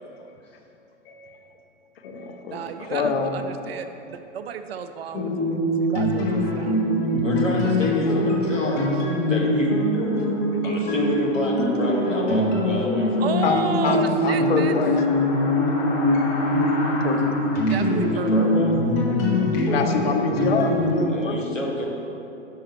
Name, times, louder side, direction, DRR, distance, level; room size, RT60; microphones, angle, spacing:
voice 1, 0.0-0.4 1.1-1.5 2.0-3.4 13.4-15.2 16.9-17.3 19.5-21.4, left 5 dB, 55° left, 5 dB, 0.7 m, -27 dB
voice 2, 2.5-6.8 13.2-14.7 17.3-17.4 17.7-18.6, right 7 dB, 55° right, 9 dB, 0.4 m, -32 dB
sound 1, 5.1-20.9, left 1 dB, 35° left, 1.1 m, -22 dB
voice 3, 7.2-9.9 10.6-13.3 18.1-18.8 21.0-21.8, left 1 dB, 90° left, -2 dB, 1.2 m, -29 dB
5.6 x 5.2 x 4.4 m, 2.9 s
figure-of-eight pair, 105°, 37 cm